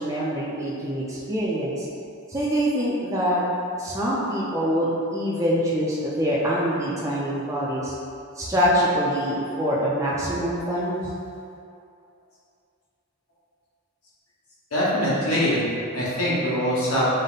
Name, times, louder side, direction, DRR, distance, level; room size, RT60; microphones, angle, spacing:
voice 1, 0.0-1.9 2.3-3.4 3.8-7.9 8.4-11.0, equal, 15° right, -7 dB, 0.4 m, -24 dB
voice 2, 14.7-15.7 15.9-17.1, equal, 70° left, -8 dB, 1.2 m, -23 dB
5.2 x 2.1 x 4.0 m, 2.5 s
head